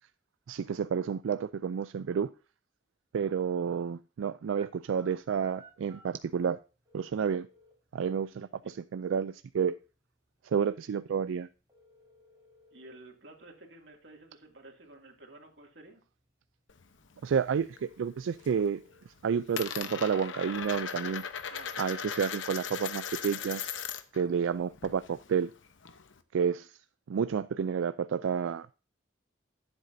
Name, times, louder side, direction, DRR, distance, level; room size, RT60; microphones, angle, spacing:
voice 1, 0.5-2.3 3.1-6.6 6.9-7.5 7.9-9.7 10.5-11.5 17.2-18.8 19.2-21.2 21.8-23.8 24.1-25.5 26.3-26.7 27.1-28.7, right 7 dB, 90° right, 0.3 m, -30 dB
sound 1, 4.6-21.3, right 2 dB, 20° right, 4.5 m, -61 dB
voice 2, 12.7-16.0 21.5-22.0, right 2 dB, 65° right, 2.5 m, -52 dB
Coin (dropping), 16.7-17.8 18.2-18.7 18.9-24.2 24.5-26.2, left 7 dB, 85° left, 0.9 m, -38 dB
14.0 x 8.1 x 2.7 m
head